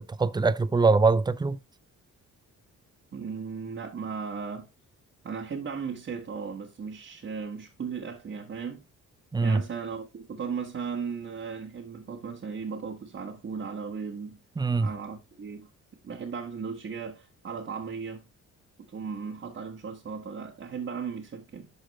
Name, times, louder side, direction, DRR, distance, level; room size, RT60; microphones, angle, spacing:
voice 1, 0.0-1.6 9.3-9.6 14.6-14.9, right 3 dB, 15° right, 0.5 m, -23 dB
voice 2, 3.1-4.7 5.2-8.8 9.4-14.4 14.8-15.7 16.0-18.3 18.9-21.7, right 6 dB, 40° right, 1.7 m, -36 dB
12.0 x 4.1 x 3.1 m
cardioid pair, 90°, 30 cm